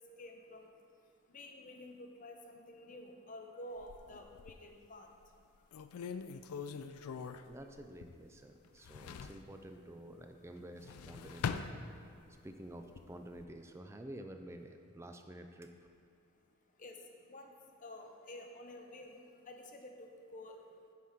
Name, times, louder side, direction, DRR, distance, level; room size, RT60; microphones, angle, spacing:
voice 1, 0.0-7.4 8.6-9.3 11.2-11.3 12.0-12.5 16.2-20.9, left 1 dB, 35° left, 3 dB, 0.6 m, -53 dB
sound 1, 3.8-4.7 5.3-5.4 5.7-8.4 8.6-9.5 10.6-12.4 12.8-13.5, left 6 dB, 85° left, 0.4 m, -43 dB
voice 2, 7.5-11.7 12.4-15.9, right 1 dB, 10° right, 6 dB, 0.3 m, -50 dB
9.2 x 4.3 x 4.9 m, 2.3 s
head